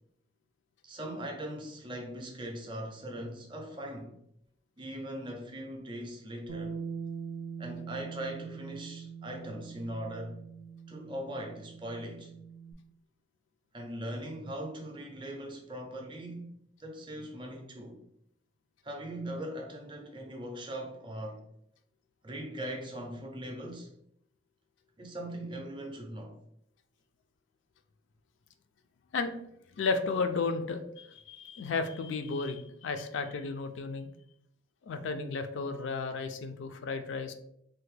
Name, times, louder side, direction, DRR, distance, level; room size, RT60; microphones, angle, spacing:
voice 1, 0.8-4.1 4.8-6.8 7.6-10.4 10.9-12.3 13.7-16.4 16.8-18.0 18.8-21.4 22.2-23.9 25.0-26.3, right 1 dB, 25° right, 0.5 m, -40 dB
Bass guitar, 6.5-12.7, right 6 dB, 80° right, 0.4 m, -43 dB
voice 2, 29.8-34.1 34.8-37.3, left 4 dB, 65° left, 0.3 m, -33 dB
3.3 x 2.1 x 3.2 m
head